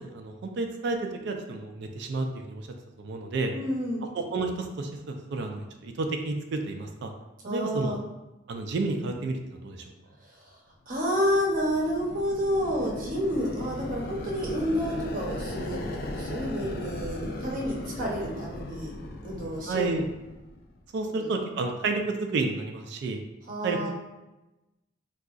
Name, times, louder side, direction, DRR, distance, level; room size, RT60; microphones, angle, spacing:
voice 1, 0.0-2.7 3.0-3.5 4.1-7.1 7.5-8.0 8.5-9.8 19.7-20.0 20.9-23.2 23.6-23.9, right 3 dB, 60° right, 4 dB, 0.3 m, -31 dB
voice 2, 3.5-4.1 7.4-8.0 10.4-10.5 10.9-18.9 19.2-20.0 21.2-21.3 23.5-23.9, equal, 45° right, -2 dB, 0.7 m, -29 dB
sound 1, 11.0-20.8, left 1 dB, 50° left, 0.4 m, -38 dB
3.7 x 2.3 x 2.3 m, 1.0 s
head